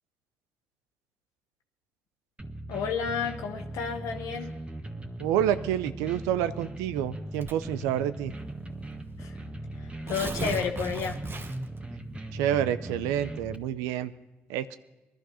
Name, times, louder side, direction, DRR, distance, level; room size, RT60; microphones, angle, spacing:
sound 1, 2.4-13.6, right 1 dB, 20° right, 1.6 m, -39 dB
voice 1, 2.7-4.5 9.2-9.4 9.8-11.2, left 6 dB, 80° left, 4 dB, 0.7 m, -31 dB
voice 2, 5.2-8.3 12.3-14.1 14.5-14.8, right 10 dB, 90° right, 13 dB, 0.4 m, -28 dB
Tearing, 7.4-7.8 8.7-8.8 9.1-9.2 9.8-11.8, right 3 dB, 45° right, 1.2 m, -36 dB
20.0 x 11.5 x 5.5 m, 1.1 s
hypercardioid pair, 45°, 5 cm